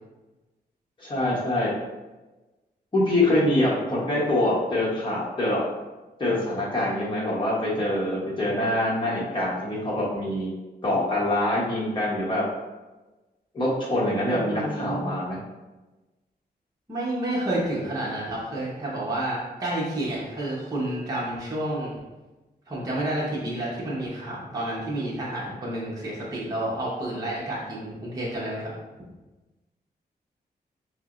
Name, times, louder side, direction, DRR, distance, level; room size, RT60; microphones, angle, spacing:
voice 1, 1.0-1.7 2.9-5.6 6.2-10.5 10.8-12.5 13.5-15.4, left 1 dB, 30° left, -5 dB, 1.0 m, -25 dB
voice 2, 14.3-15.2 16.9-22.0 22.7-28.7, right 1 dB, 20° right, -6 dB, 0.9 m, -30 dB
5.6 x 2.1 x 2.5 m, 1.1 s
wide cardioid pair, 100°, 17 cm